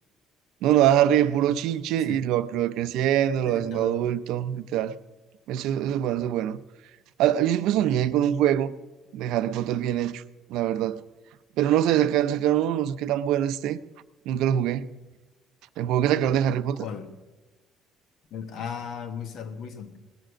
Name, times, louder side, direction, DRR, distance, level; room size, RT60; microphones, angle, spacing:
voice 1, 0.6-4.9 5.5-6.6 7.2-8.7 9.1-10.2 10.5-11.0 11.6-13.8 14.3-14.9 15.8-16.8, right 11 dB, 75° right, 0.6 m, -23 dB
voice 2, 3.4-4.0 7.7-7.8 16.7-17.1 18.3-20.0, left 7 dB, 55° left, 1.4 m, -36 dB
18.5 x 9.0 x 6.2 m
cardioid pair, 170°, 0 cm